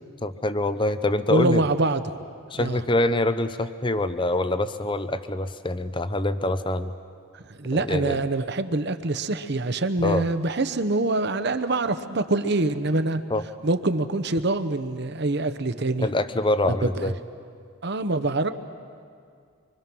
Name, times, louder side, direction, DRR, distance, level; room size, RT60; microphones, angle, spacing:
voice 1, 0.2-1.6 2.5-6.9 7.7-8.2 10.0-10.2 13.3-13.4 16.0-17.1, left 2 dB, 20° left, 12 dB, 0.7 m, -25 dB
voice 2, 1.3-2.2 2.6-2.8 7.5-13.2 13.6-16.1 16.8-17.1 17.8-18.5, right 2 dB, 50° right, 11 dB, 0.9 m, -25 dB
25.5 x 24.5 x 6.1 m, 2.3 s
head